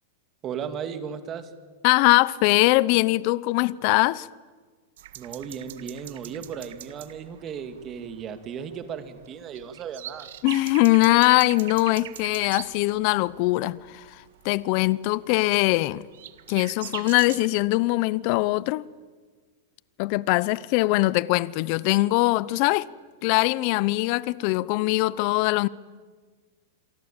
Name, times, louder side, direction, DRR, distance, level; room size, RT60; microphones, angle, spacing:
voice 1, 0.4-1.5 5.2-10.3, right 7 dB, 30° right, 2.3 m, -35 dB
voice 2, 1.8-4.3 10.4-16.1 16.5-18.8 20.0-22.9 23.2-25.7, left 20 dB, 50° left, 0.8 m, -22 dB
sound 1, 5.0-17.5, right 12 dB, 75° right, 1.7 m, -43 dB
27.5 x 23.0 x 9.0 m
supercardioid pair, 145°, 0 cm